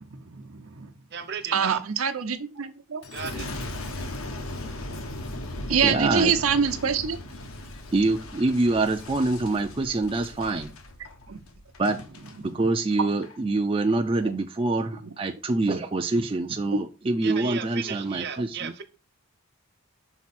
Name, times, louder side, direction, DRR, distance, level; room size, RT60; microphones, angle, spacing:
voice 1, 0.1-0.9 1.5-3.0 5.7-7.2 11.3-11.4 12.5-12.6 15.0-15.1 16.7-16.8 17.3-17.4, right 6 dB, 80° right, 0.8 m, -25 dB
voice 2, 1.1-1.8 3.1-3.5 17.2-18.8, right 6 dB, 50° right, 0.9 m, -35 dB
Boom, 3.0-12.4 12.9-13.4, left 1 dB, 80° left, 1.0 m, -38 dB
voice 3, 5.8-6.3 7.9-10.7 11.8-12.0 12.4-18.7, right 2 dB, 25° right, 0.4 m, -25 dB
5.9 x 4.1 x 4.2 m
head